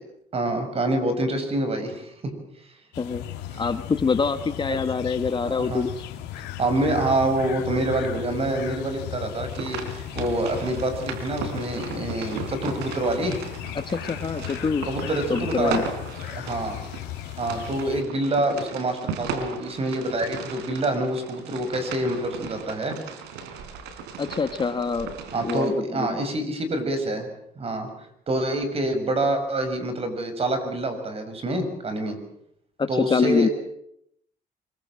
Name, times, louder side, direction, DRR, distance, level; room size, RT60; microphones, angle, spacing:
voice 1, 0.3-2.3 3.5-3.6 5.4-5.9 6.6-13.4 14.9-15.8 16.3-16.8 17.4-23.0 25.3-27.3 27.6-27.9 28.3-32.2 32.9-33.5, right 1 dB, 35° right, 8 dB, 6.4 m, -26 dB
sound 1, 2.9-18.0, left 12 dB, 90° left, 3.1 m, -36 dB
voice 2, 3.6-5.9 13.7-14.9 15.3-15.8 24.2-25.1 25.4-26.2 32.8-33.5, left 5 dB, 30° left, 10 dB, 1.3 m, -25 dB
sound 2, 9.5-25.7, right 6 dB, 90° right, 4.3 m, -37 dB
25.0 x 23.0 x 7.6 m, 0.73 s
cardioid pair, 110°, 17 cm